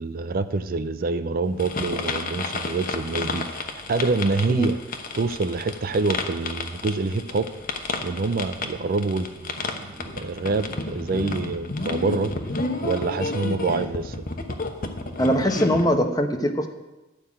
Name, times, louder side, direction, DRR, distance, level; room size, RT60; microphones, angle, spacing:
voice 1, 0.0-4.8 5.1-7.5 8.0-12.3 12.8-14.3, right 3 dB, 45° right, 12 dB, 0.4 m, -26 dB
sound 1, 1.6-15.9, left 3 dB, 45° left, 1.0 m, -31 dB
voice 2, 15.2-16.7, equal, 20° left, 6 dB, 0.9 m, -21 dB
11.5 x 5.6 x 8.5 m, 1.1 s
head